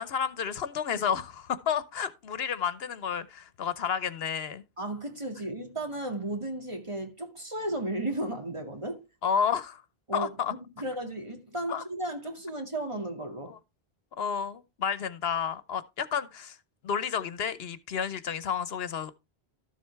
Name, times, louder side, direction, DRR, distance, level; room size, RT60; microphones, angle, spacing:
voice 1, 0.0-4.6 9.2-9.8 10.1-10.5 11.7-11.8 13.5-13.6 14.2-16.6 16.8-19.1, left 7 dB, 75° left, 1.0 m, -31 dB
voice 2, 4.8-9.1 10.1-10.3 10.8-13.5, right 1 dB, 30° right, 2.3 m, -34 dB
13.0 x 7.5 x 3.4 m
omnidirectional pair, 1.0 m